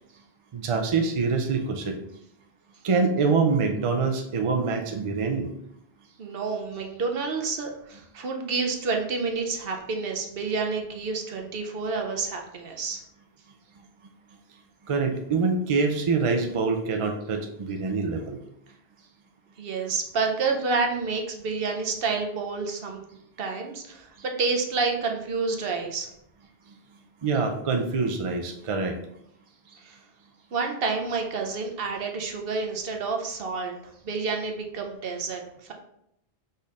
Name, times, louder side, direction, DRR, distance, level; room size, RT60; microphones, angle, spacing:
voice 1, 0.5-2.0 2.8-5.5 13.8-13.9 14.8-18.4 27.2-29.0, right 4 dB, 45° right, 3 dB, 0.4 m, -25 dB
voice 2, 6.2-13.0 19.6-23.0 23.4-26.1 29.7-30.0 30.5-33.7 34.0-35.7, right 4 dB, 65° right, 3 dB, 0.9 m, -29 dB
5.2 x 4.2 x 2.5 m, 0.76 s
omnidirectional pair, 1.1 m